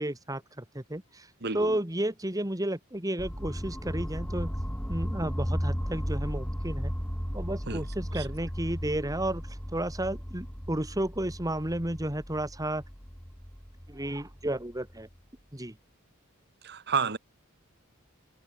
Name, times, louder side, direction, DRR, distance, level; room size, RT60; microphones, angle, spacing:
voice 1, 0.0-1.3 1.5-4.5 4.9-6.9 7.3-12.8 13.9-15.1 15.5-15.7, right 1 dB, 15° right, 2.1 m, -32 dB
voice 2, 1.4-1.8 7.7-7.8 8.1-8.3 16.6-17.2, right 5 dB, 50° right, 2.2 m, -30 dB
sound 1, 3.2-15.1, equal, 5° left, 5.2 m, -35 dB
head